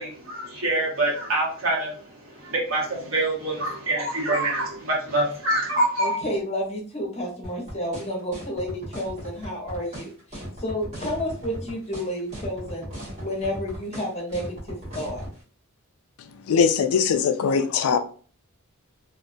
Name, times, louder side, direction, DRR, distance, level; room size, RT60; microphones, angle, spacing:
voice 1, 0.0-6.2, right 1 dB, 75° right, -4 dB, 1.3 m, -25 dB
voice 2, 6.0-12.9 13.2-15.2, equal, 30° left, -1 dB, 0.7 m, -31 dB
sound 1, 7.4-15.3, equal, 30° right, 1.0 m, -37 dB
voice 3, 16.5-18.0, left 6 dB, 85° left, 9 dB, 0.3 m, -21 dB
2.4 x 2.2 x 2.5 m, 0.42 s
head